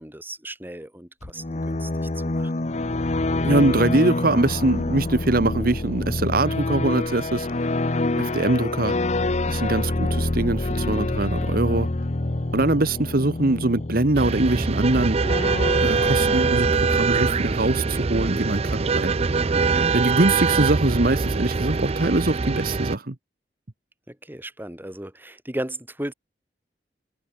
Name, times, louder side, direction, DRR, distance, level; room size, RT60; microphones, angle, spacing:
voice 1, 0.0-2.5 24.1-26.1, right 1 dB, 10° right, 2.8 m, -36 dB
sound 1, 1.2-17.9, left 2 dB, 40° left, 0.9 m, -27 dB
voice 2, 3.4-7.5 8.1-9.0 9.5-11.9 12.5-15.3 15.8-19.1 19.9-23.1, right 2 dB, 55° right, 1.3 m, -23 dB
sound 2, 14.1-23.0, right 4 dB, 35° right, 0.5 m, -23 dB
open air
head